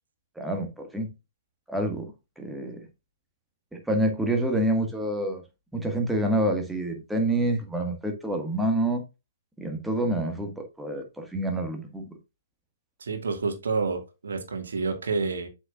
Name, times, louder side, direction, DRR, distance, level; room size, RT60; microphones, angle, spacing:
voice 1, 0.3-1.1 1.7-2.9 3.7-5.4 5.7-9.0 9.6-12.1, right 1 dB, 5° right, 1.6 m, -27 dB
voice 2, 13.0-15.5, right 4 dB, 65° right, 1.8 m, -29 dB
7.6 x 6.4 x 2.4 m
figure-of-eight pair, 125°, 0 cm